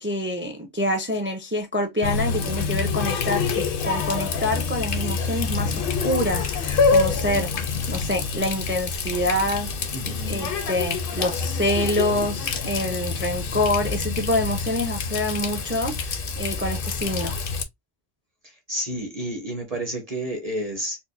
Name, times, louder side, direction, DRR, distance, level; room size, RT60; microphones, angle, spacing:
voice 1, 0.0-7.5 7.9-9.7 10.2-17.3, left 1 dB, 15° right, 0.4 m, -26 dB
Water tap faucet, 2.0-17.6, left 4 dB, 55° left, 0.7 m, -26 dB
voice 2, 9.9-10.5 18.4-21.0, right 1 dB, 35° right, 0.8 m, -30 dB
4.4 x 2.2 x 2.6 m
omnidirectional pair, 1.3 m